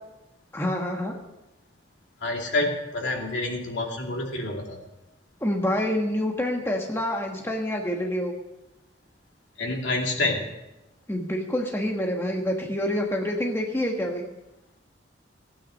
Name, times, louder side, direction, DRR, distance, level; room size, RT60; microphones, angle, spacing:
voice 1, 0.5-1.1 5.4-8.3 11.1-14.3, left 1 dB, 15° left, 1 dB, 1.4 m, -27 dB
voice 2, 2.2-4.8 9.6-10.4, left 2 dB, 75° left, 0 dB, 2.7 m, -28 dB
16.0 x 9.3 x 6.5 m, 0.98 s
head